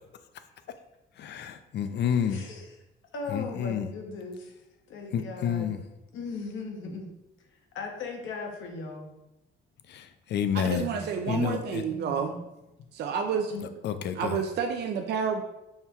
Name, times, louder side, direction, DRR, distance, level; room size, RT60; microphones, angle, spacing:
voice 1, 1.2-2.4 3.3-3.9 5.1-5.8 9.9-11.9 13.6-14.4, left 8 dB, 60° left, 10 dB, 0.4 m, -30 dB
voice 2, 2.3-2.6 3.1-4.5 4.9-5.7 6.1-7.1 7.5-9.1 10.7-11.5 11.8-12.4 13.5-13.7, left 3 dB, 75° left, 2 dB, 0.8 m, -38 dB
voice 3, 10.5-12.3 12.9-13.5 14.2-15.4, right 6 dB, 60° right, 4 dB, 0.4 m, -29 dB
5.6 x 2.2 x 2.9 m, 0.93 s
cardioid pair, 90°, 20 cm